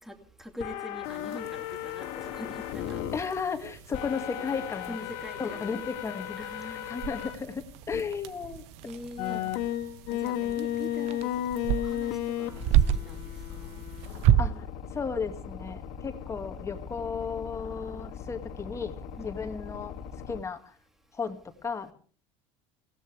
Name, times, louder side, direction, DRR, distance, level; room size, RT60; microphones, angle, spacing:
voice 1, 0.0-3.0 4.3-5.9 6.4-6.9 8.8-9.4 10.1-11.3 11.7-12.6 12.9-13.8 19.2-19.5, equal, 5° right, 5 dB, 2.6 m, -43 dB
sound 1, 0.6-3.2 3.9-7.3 7.9-8.0 9.2-20.4, left 11 dB, 70° left, 2.5 m, -35 dB
sound 2, 1.0-14.3, right 8 dB, 85° right, 1.7 m, -52 dB
sound 3, 2.2-3.7 4.2-4.3 4.5-4.8 5.1-5.2 5.6-6.1 6.4-6.5 7.0-13.2 14.0-14.7, right 11 dB, 50° right, 0.8 m, -28 dB
voice 2, 3.1-5.1 5.4-8.6 9.3-9.5 14.4-14.5 14.9-19.0 19.2-19.9 20.3-20.7 21.1-21.9, left 5 dB, 20° left, 6 dB, 2.2 m, -34 dB
21.0 x 17.0 x 3.4 m, 0.42 s
supercardioid pair, 130°, 14 cm